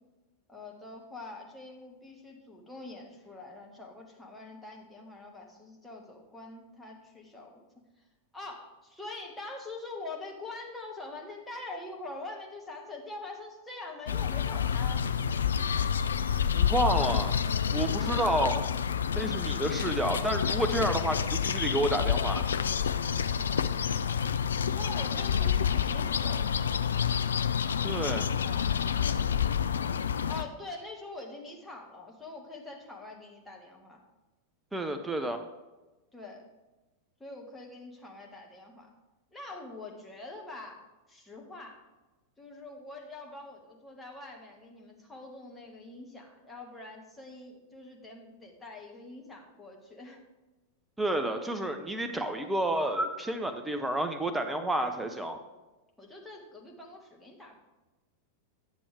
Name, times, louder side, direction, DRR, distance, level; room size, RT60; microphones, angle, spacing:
voice 1, 0.5-7.7 8.3-15.0 17.8-18.8 23.4-23.6 24.7-26.8 28.2-29.2 30.2-34.0 36.1-36.4 37.2-38.9 39.3-40.8 41.1-41.8 42.4-50.2 51.8-51.9 56.0-57.6, left 2 dB, 10° left, -1 dB, 1.7 m, -44 dB
sound 1, 14.1-30.4, left 8 dB, 70° left, 0.3 m, -28 dB
voice 2, 16.5-18.6 19.1-22.4 27.8-28.3 34.7-35.4 51.0-55.4, right 1 dB, 10° right, 6 dB, 0.7 m, -30 dB
10.0 x 6.9 x 3.4 m, 1.1 s
figure-of-eight pair, 90°, 0 cm